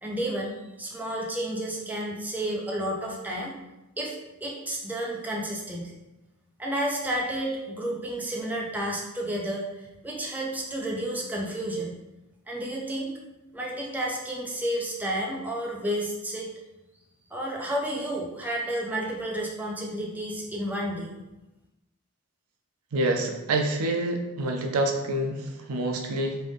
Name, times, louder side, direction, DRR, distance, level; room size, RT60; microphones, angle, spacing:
voice 1, 0.0-3.6 4.0-5.9 6.6-11.9 12.5-13.1 13.5-16.5 17.3-21.1, right 1 dB, 10° right, -3 dB, 0.5 m, -31 dB
voice 2, 22.9-26.4, right 2 dB, 70° right, 4 dB, 0.4 m, -27 dB
3.2 x 2.5 x 3.5 m, 1.0 s
head